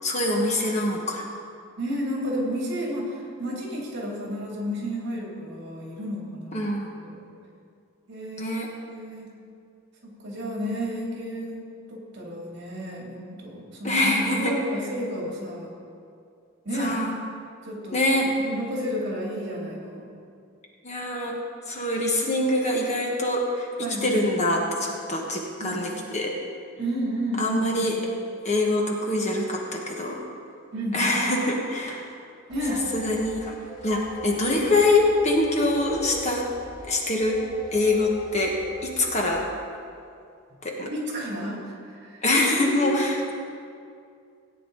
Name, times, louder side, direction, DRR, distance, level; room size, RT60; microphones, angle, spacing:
voice 1, 0.0-1.3 6.5-6.9 8.4-8.7 13.8-14.5 16.8-17.2 17.9-18.3 20.8-21.4 21.7-23.7 24.0-26.3 27.4-28.0 28.4-30.2 30.9-32.1 32.9-33.5 33.8-36.5 36.9-37.4 37.7-38.6 38.8-39.4 40.6-40.9 42.2-43.3, left 2 dB, 35° left, -1 dB, 1.3 m, -24 dB
voice 2, 1.8-6.7 7.0-7.2 8.1-8.6 8.9-9.3 10.0-15.7 16.6-16.9 17.6-20.1 23.8-24.3 25.6-25.8 26.8-27.9 30.7-31.1 32.5-32.8 40.9-42.2 42.5-43.0, equal, 55° right, -3 dB, 3.0 m, -32 dB
sound 1, 32.5-39.4, left 2 dB, 20° right, 1.8 m, -41 dB
17.0 x 9.2 x 4.0 m, 2.4 s
head